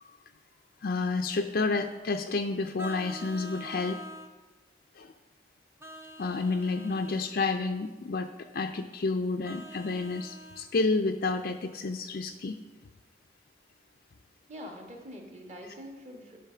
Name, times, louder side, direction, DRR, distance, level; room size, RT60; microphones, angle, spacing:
voice 1, 0.8-4.0 5.0-5.1 6.2-12.6, left 3 dB, 55° left, 5 dB, 0.4 m, -30 dB
Vehicle horn car horn honking, 2.8-4.3 5.8-7.3 9.4-10.6, equal, 15° right, 0.6 m, -45 dB
voice 2, 14.5-16.4, equal, 35° right, 2 dB, 1.4 m, -44 dB
10.0 x 5.2 x 6.8 m, 1.3 s
head